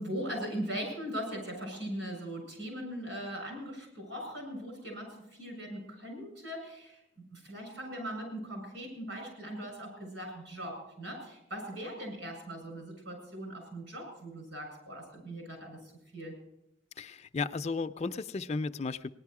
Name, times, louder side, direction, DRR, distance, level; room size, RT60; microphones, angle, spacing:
voice 1, 0.0-15.8 16.1-16.3, equal, 75° right, 2 dB, 7.6 m, -40 dB
voice 2, 17.0-19.1, left 4 dB, 35° left, 11 dB, 0.4 m, -34 dB
18.5 x 11.0 x 4.8 m, 0.83 s
head